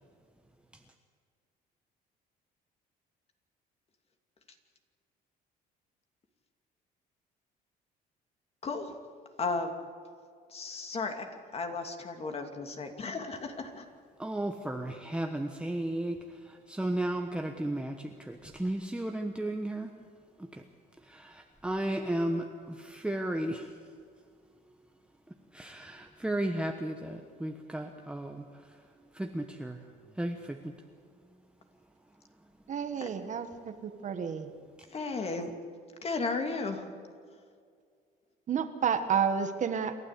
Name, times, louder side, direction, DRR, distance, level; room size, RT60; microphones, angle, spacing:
voice 1, 8.6-8.9 9.4-9.7 10.5-11.3 11.5-13.9 33.0-33.1 34.9-35.5 36.0-36.9, left 4 dB, 35° left, 5 dB, 2.6 m, -34 dB
voice 2, 14.2-19.9 20.4-20.6 21.0-23.7 25.5-28.8 29.1-29.8 30.1-30.7 32.9-33.0 34.8-34.9, right 1 dB, 5° right, 4 dB, 1.2 m, -34 dB
voice 3, 32.7-34.5 38.5-40.0, right 7 dB, 45° right, 8 dB, 1.6 m, -30 dB
28.5 x 12.5 x 8.3 m, 2.1 s
cardioid pair, 110°, 17 cm